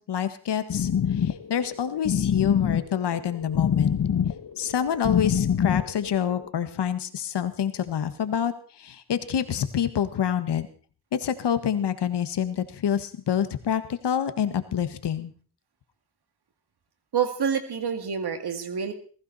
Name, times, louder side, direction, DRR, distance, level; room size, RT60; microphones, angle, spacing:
voice 1, 0.1-3.9 4.6-10.7 11.1-15.3, left 9 dB, 85° left, 10 dB, 1.6 m, -27 dB
sound 1, 0.7-6.5, left 8 dB, 60° left, 1.1 m, -26 dB
voice 2, 17.1-18.9, right 7 dB, 70° right, 8 dB, 2.3 m, -27 dB
20.5 x 15.5 x 4.2 m, 0.42 s
cardioid pair, 75°, 40 cm